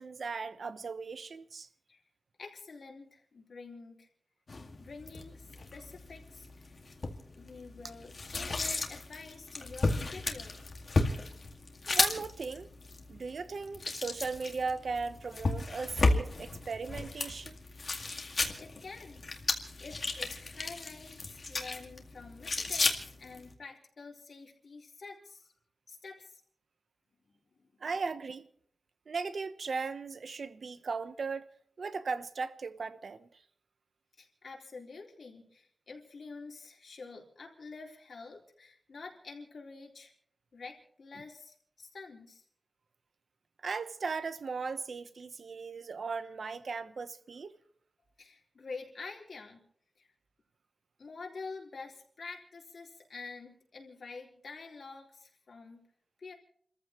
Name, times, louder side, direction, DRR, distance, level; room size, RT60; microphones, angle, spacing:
voice 1, 0.0-1.7 11.9-12.7 13.1-17.6 27.8-28.5 29.1-31.5 31.8-33.3 43.6-47.5, right 4 dB, 75° right, 0.9 m, -37 dB
voice 2, 2.4-4.1 4.8-6.8 7.4-10.6 18.6-19.3 19.8-25.5 25.9-26.4 27.3-27.8 34.2-40.1 40.5-42.4 48.2-49.6 50.0-50.1 51.0-55.8 56.2-56.3, left 4 dB, 75° left, 3.9 m, -48 dB
sound 1, 4.5-23.5, left 3 dB, 55° left, 2.1 m, -34 dB
30.0 x 14.5 x 3.1 m
wide cardioid pair, 120°, 0 cm